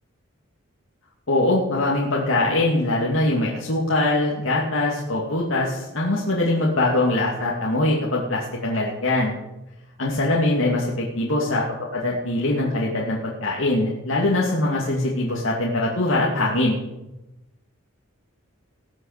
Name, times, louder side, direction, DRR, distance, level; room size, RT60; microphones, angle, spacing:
voice 1, 1.3-9.4 10.0-11.6 11.9-16.8, left 2 dB, 65° left, -4 dB, 2.4 m, -22 dB
19.5 x 6.9 x 6.7 m, 0.97 s
head